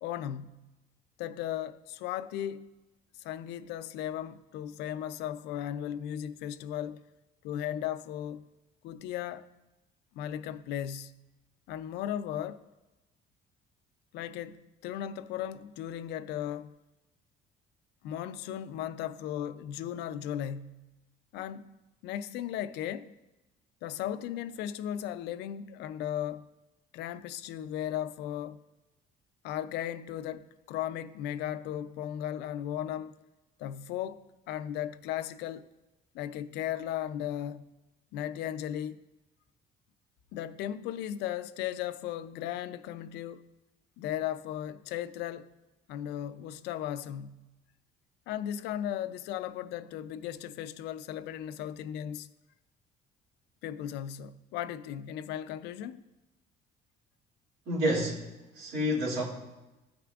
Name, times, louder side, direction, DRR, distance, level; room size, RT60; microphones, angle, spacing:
voice 1, 0.0-0.7 1.2-2.7 3.2-7.0 7.4-8.5 8.8-9.5 10.1-11.2 11.7-12.7 14.1-16.8 18.0-20.9 21.3-21.8 22.0-23.1 23.8-26.5 26.9-28.6 29.4-33.2 33.6-35.7 36.1-37.6 38.1-39.0 40.3-43.5 44.0-45.5 45.9-47.5 48.3-52.3 53.6-56.0, left 11 dB, 85° left, 0.4 m, -36 dB
voice 2, 57.7-59.2, equal, 70° right, 2.5 m, -29 dB
14.5 x 6.0 x 2.4 m
cardioid pair, 110°, 17 cm